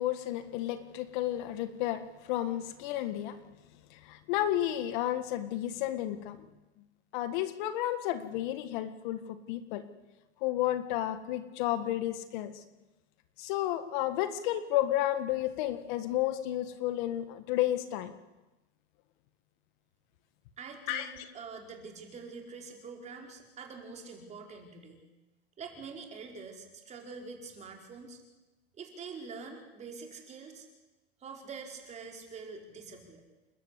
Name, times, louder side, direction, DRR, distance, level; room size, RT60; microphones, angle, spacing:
voice 1, 0.0-3.4 3.9-6.4 7.1-9.2 9.5-9.8 10.4-12.6 13.4-18.1 20.9-21.1, left 13 dB, 55° left, 10 dB, 1.8 m, -32 dB
voice 2, 20.6-25.0 25.6-28.2 28.8-30.7 31.2-33.2, right 5 dB, 25° right, 3 dB, 4.4 m, -45 dB
29.0 x 12.5 x 8.3 m, 1.1 s
supercardioid pair, 140°, 30 cm